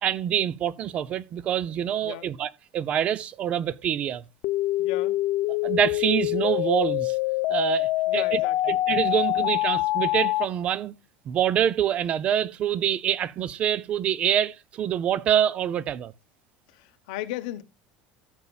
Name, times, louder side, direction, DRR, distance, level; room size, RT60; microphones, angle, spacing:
voice 1, 0.0-4.2 5.6-7.2 7.5-10.9 11.3-16.1, right 10 dB, 30° right, 0.5 m, -26 dB
sound 1, 4.4-10.4, left 17 dB, 50° left, 0.4 m, -25 dB
voice 2, 4.8-5.2 8.1-8.8 16.7-17.6, left 15 dB, 85° left, 0.9 m, -36 dB
16.0 x 7.0 x 2.3 m
cardioid pair, 170°, 4 cm